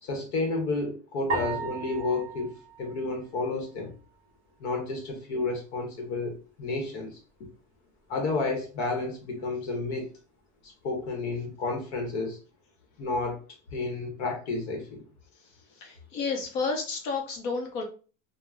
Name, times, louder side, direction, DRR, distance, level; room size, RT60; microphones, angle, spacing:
voice 1, 0.0-2.5 2.8-3.9 4.6-7.2 8.1-10.1 10.6-12.4 13.0-13.4 13.7-15.0, left 3 dB, 65° left, 2 dB, 0.9 m, -31 dB
sound 1, 1.3-3.8, right 3 dB, 20° right, 0.5 m, -36 dB
voice 2, 15.8-17.8, left 4 dB, 40° left, 3 dB, 0.6 m, -31 dB
2.4 x 2.0 x 3.2 m, 0.36 s
supercardioid pair, 170°, 37 cm